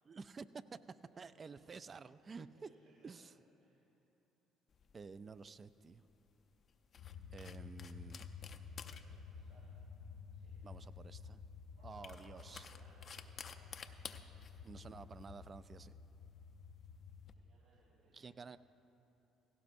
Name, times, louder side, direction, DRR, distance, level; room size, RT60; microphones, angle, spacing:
voice 1, 0.0-0.8 1.2-2.7 3.0-3.3 4.9-6.0 7.3-8.3 10.6-11.4 11.8-12.7 14.6-16.0 18.1-18.6, right 5 dB, 35° right, 14 dB, 0.4 m, -51 dB
voice 2, 2.3-3.1 3.6-3.8 8.5-9.7 10.3-10.8 11.8-14.5 17.3-18.6, right 2 dB, 90° right, -9 dB, 3.3 m, -68 dB
sound 1, 4.7-17.3, left 6 dB, 50° left, 0.5 m, -55 dB
sound 2, 7.0-17.3, left 5 dB, 85° left, 1.2 m, -52 dB
17.0 x 16.0 x 2.6 m, 3.0 s
supercardioid pair, 70°, 0 cm